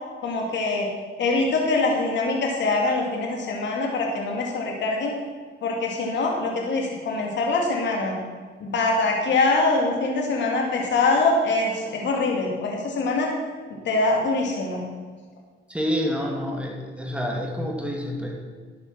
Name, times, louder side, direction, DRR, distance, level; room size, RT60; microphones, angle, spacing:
voice 1, 0.2-0.9 1.2-5.1 5.6-8.1 8.6-13.3 13.8-14.8, left 3 dB, 65° left, 0 dB, 2.5 m, -23 dB
voice 2, 15.7-18.4, equal, 5° right, 0 dB, 2.6 m, -28 dB
12.0 x 8.8 x 6.1 m, 1.5 s
cardioid pair, 90°, 20 cm